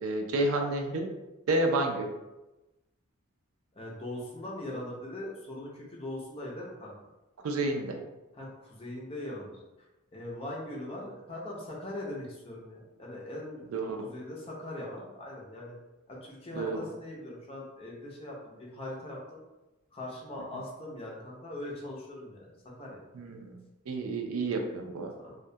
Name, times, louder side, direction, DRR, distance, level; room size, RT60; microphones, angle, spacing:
voice 1, 0.0-1.1 1.5-2.1 7.4-8.0 13.7-14.1 16.5-16.8 23.1-23.5 23.9-25.1, right 2 dB, 80° right, 4 dB, 0.4 m, -30 dB
voice 2, 3.7-6.9 8.3-9.5 9.8-9.9 10.1-13.7 14.0-15.8 16.1-19.4 19.9-22.5 22.8-23.0 25.2-25.4, left 1 dB, 25° left, -3 dB, 0.5 m, -41 dB
2.2 x 2.1 x 2.6 m, 1.0 s
head